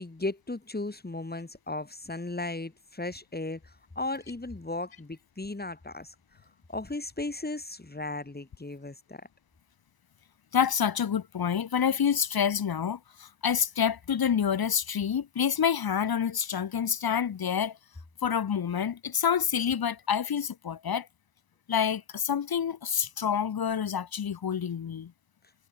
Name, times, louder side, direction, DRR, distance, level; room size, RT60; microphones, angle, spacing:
voice 1, 0.0-3.6 4.0-6.1 6.7-9.2, left 2 dB, 25° left, 2.5 m, -36 dB
voice 2, 10.5-17.8 18.2-21.1 21.7-25.1, left 8 dB, 75° left, 1.0 m, -28 dB
wide cardioid pair, 85°, 37 cm